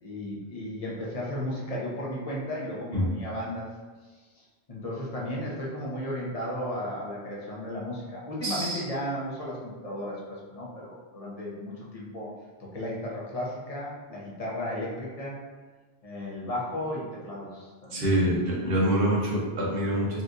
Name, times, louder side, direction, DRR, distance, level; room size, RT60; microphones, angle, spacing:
voice 1, 0.0-3.7 4.7-12.3 12.7-15.4 16.0-18.1, left 1 dB, 40° left, -5 dB, 0.8 m, -34 dB
voice 2, 8.4-8.8 17.9-20.2, equal, 65° right, -4 dB, 1.1 m, -25 dB
4.2 x 2.4 x 2.5 m, 1.4 s
omnidirectional pair, 1.0 m